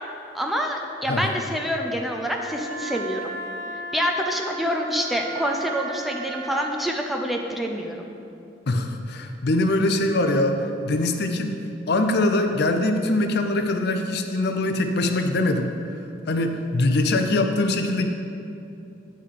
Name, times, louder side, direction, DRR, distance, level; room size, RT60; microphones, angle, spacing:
voice 1, 0.3-3.2 3.9-8.0, equal, ahead, 1 dB, 0.5 m, -26 dB
Wind instrument woodwind instrument, 2.2-6.8, right 2 dB, 55° right, 1.8 m, -35 dB
voice 2, 8.7-10.6 10.8-11.6 11.9-15.7 16.3-18.1, left 2 dB, 60° left, 6 dB, 0.5 m, -22 dB
8.4 x 3.8 x 6.4 m, 2.7 s
head